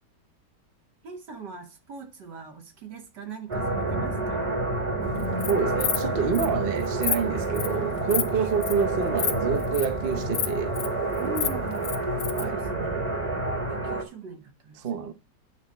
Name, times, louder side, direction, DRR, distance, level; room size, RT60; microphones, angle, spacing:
voice 1, 1.0-4.6 8.3-8.6 11.2-11.9 12.4-13.2 13.7-15.1, right 4 dB, 75° right, 2.0 m, -41 dB
sound 1, 3.5-14.0, right 2 dB, 20° right, 1.2 m, -29 dB
Insect, 5.2-5.5 5.8-6.0 6.3-6.5 6.8-7.2 7.5-7.8 8.1-8.3 8.6-8.8 9.2-9.3 9.6-9.9 10.3-10.9 11.2-12.4, left 8 dB, 65° left, 1.4 m, -28 dB
voice 2, 5.5-10.8 12.4-12.6 14.8-15.1, right 6 dB, 45° right, 0.8 m, -27 dB
8.9 x 4.2 x 6.5 m
omnidirectional pair, 1.9 m